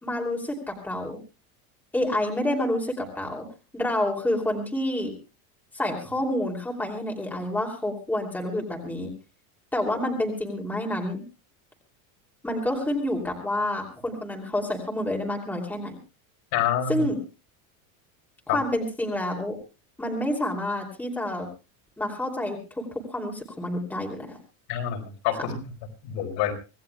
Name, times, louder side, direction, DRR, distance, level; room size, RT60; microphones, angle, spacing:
voice 1, 0.0-1.2 1.9-3.5 3.7-5.1 5.7-9.1 9.7-11.2 12.4-16.0 16.9-17.2 18.5-19.5 20.0-21.5 22.0-24.4, left 1 dB, 5° left, 0 dB, 2.9 m, -28 dB
voice 2, 16.5-17.0 18.5-18.6 24.7-25.7 26.0-26.5, left 9 dB, 50° left, 3 dB, 4.5 m, -27 dB
25.5 x 17.5 x 2.3 m, 0.31 s
supercardioid pair, 165°, 42 cm